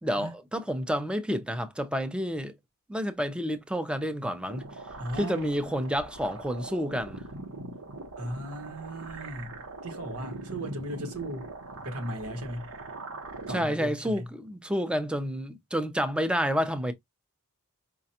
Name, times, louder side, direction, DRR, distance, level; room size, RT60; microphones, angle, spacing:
voice 1, 0.0-2.5 2.9-4.7 5.2-7.2 13.5-16.9, equal, 5° right, 0.6 m, -29 dB
sound 1, 4.5-13.6, right 3 dB, 65° right, 0.9 m, -42 dB
voice 2, 5.0-5.5 8.2-11.5 11.8-12.7 13.5-14.3, right 1 dB, 85° right, 1.3 m, -37 dB
5.0 x 2.2 x 2.7 m
head